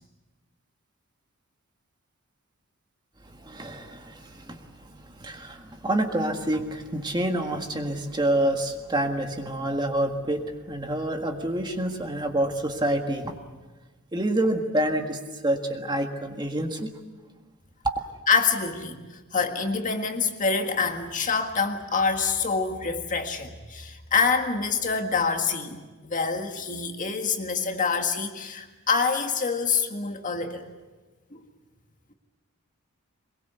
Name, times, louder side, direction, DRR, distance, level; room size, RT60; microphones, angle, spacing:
voice 1, 3.4-4.6 5.2-13.4 14.1-16.9 17.8-18.0, right 1 dB, 20° right, 4 dB, 1.6 m, -27 dB
voice 2, 18.3-19.0 19.3-30.7 31.3-31.4, left 5 dB, 35° left, 5 dB, 1.7 m, -26 dB
23.5 x 21.5 x 8.1 m, 1.3 s
head